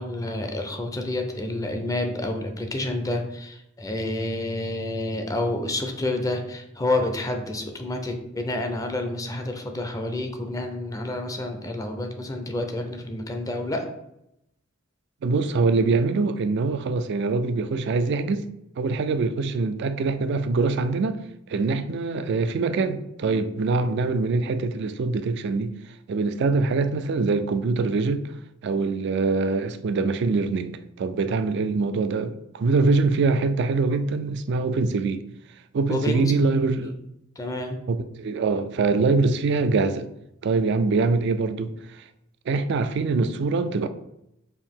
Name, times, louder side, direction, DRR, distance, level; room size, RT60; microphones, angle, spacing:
voice 1, 0.0-13.9 35.9-36.3 36.8-36.9 37.4-37.8, left 1 dB, 15° left, 0.5 m, -29 dB
voice 2, 15.2-18.5 18.8-21.2 21.5-25.7 26.1-28.3 28.6-35.2 35.7-36.9 37.9-40.1 40.4-42.0 42.5-43.9, right 3 dB, 60° right, 0.3 m, -24 dB
4.6 x 2.7 x 3.6 m
head